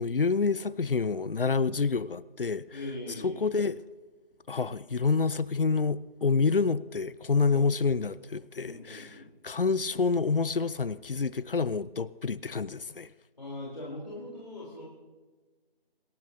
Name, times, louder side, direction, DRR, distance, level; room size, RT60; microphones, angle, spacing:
voice 1, 0.0-2.7 3.2-3.8 4.5-9.1 9.4-13.1, left 4 dB, 65° left, 0.5 m, -28 dB
voice 2, 2.7-3.5 7.4-7.6 8.6-9.3 13.4-14.8, left 1 dB, 45° left, 3.6 m, -40 dB
26.5 x 12.5 x 2.8 m
figure-of-eight pair, 175°, 30 cm